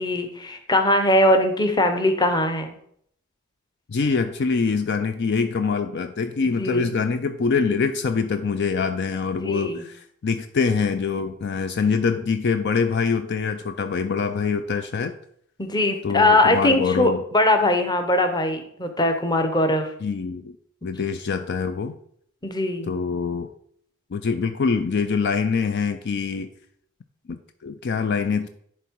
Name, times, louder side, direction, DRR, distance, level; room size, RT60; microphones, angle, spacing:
voice 1, 0.0-2.7 6.6-6.9 9.4-9.8 15.6-19.9 22.4-22.9, left 1 dB, 20° left, 6 dB, 0.9 m, -21 dB
voice 2, 3.9-15.1 16.0-17.2 20.0-20.6 20.8-21.9 22.9-23.5 24.1-26.5 27.3-28.5, left 5 dB, 55° left, 9 dB, 0.4 m, -24 dB
11.0 x 3.6 x 4.6 m, 0.67 s
head